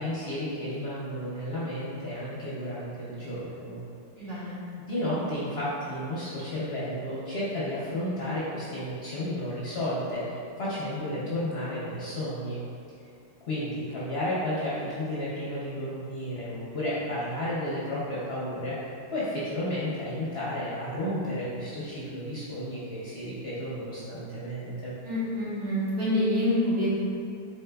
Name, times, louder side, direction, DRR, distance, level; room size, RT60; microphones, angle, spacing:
voice 1, 0.0-3.8 4.2-4.5 4.9-12.6 13.5-25.0, left 1 dB, 55° left, -9 dB, 0.7 m, -32 dB
voice 2, 4.2-4.6 25.0-26.9, left 1 dB, 80° right, -11 dB, 1.9 m, -27 dB
4.2 x 3.6 x 2.2 m, 2.5 s
omnidirectional pair, 1.7 m